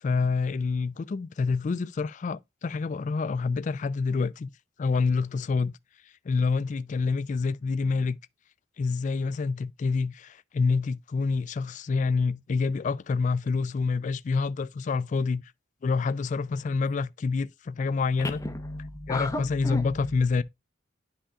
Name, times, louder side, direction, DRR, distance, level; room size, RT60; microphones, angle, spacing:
voice 1, 0.0-4.5 4.8-5.8 6.3-8.2 8.8-15.4 15.8-18.4 19.1-20.4, left 4 dB, 40° left, 0.3 m, -27 dB
voice 2, 18.2-20.2, left 1 dB, 20° left, 0.9 m, -33 dB
10.0 x 5.6 x 2.3 m
head